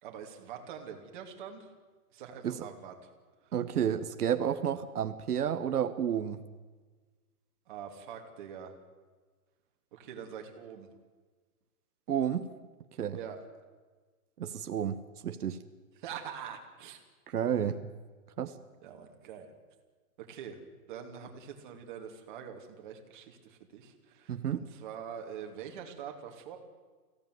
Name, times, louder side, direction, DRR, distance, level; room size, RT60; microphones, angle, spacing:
voice 1, 0.0-1.7 2.1-3.1 3.4-3.5 7.7-8.7 9.9-10.9 13.1-13.4 16.0-17.0 18.8-19.5 20.2-20.6 20.9-26.6, right 8 dB, 35° right, 3 dB, 2.8 m, -44 dB
voice 2, 3.5-6.4 12.1-12.5 13.0-13.2 14.4-15.6 17.3-17.9 18.4-18.5 24.3-24.6, right 9 dB, 85° right, 9 dB, 1.5 m, -31 dB
24.0 x 16.5 x 9.4 m, 1.4 s
hypercardioid pair, 175°, 44 cm